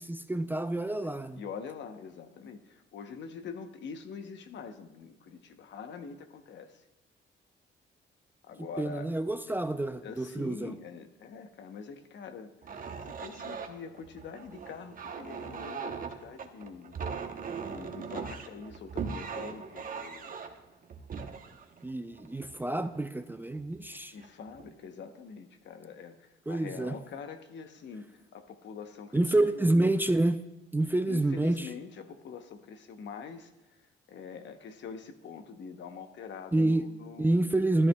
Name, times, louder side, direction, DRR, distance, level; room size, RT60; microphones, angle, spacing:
voice 1, 0.0-1.4 8.6-10.8 21.8-24.2 26.5-27.0 29.1-30.4 30.7-31.7 36.5-36.9 37.2-37.9, right 2 dB, 10° right, 9 dB, 0.4 m, -28 dB
voice 2, 1.0-6.8 8.4-9.1 10.0-17.0 17.7-20.4 24.1-29.9 31.1-33.5 34.1-37.5, left 6 dB, 65° left, 8 dB, 0.9 m, -44 dB
sound 1, 12.6-22.9 23.5-23.8 24.2-24.7, right 5 dB, 45° right, 0.9 m, -40 dB
13.0 x 11.0 x 2.2 m, 0.98 s
cardioid pair, 90°, 20 cm